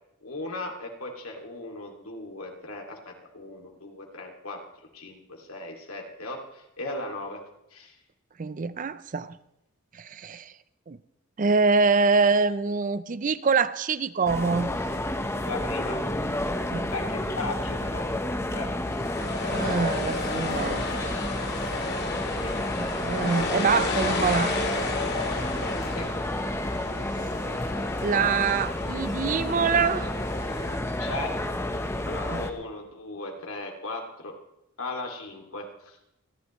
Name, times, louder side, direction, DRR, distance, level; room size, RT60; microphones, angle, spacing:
voice 1, 0.2-4.6 4.9-7.4 7.7-7.9 15.4-16.0 16.9-18.1 18.5-18.7 22.4-22.5 25.9-26.1 31.0-31.3 32.0-34.3 34.8-35.9, left 2 dB, 85° left, 2 dB, 2.4 m, -37 dB
voice 2, 8.4-9.4 9.9-10.5 10.9-11.0 11.4-14.7 16.7-16.9 19.5-20.8 22.8-24.6 28.0-30.1 32.3-32.4, right 4 dB, 40° right, 15 dB, 0.5 m, -25 dB
sound 1, 14.3-32.5, left 1 dB, 10° left, 0.9 m, -30 dB
sound 2, 18.9-30.8, left 3 dB, 50° left, 2.1 m, -33 dB
26.5 x 11.0 x 3.1 m, 0.83 s
head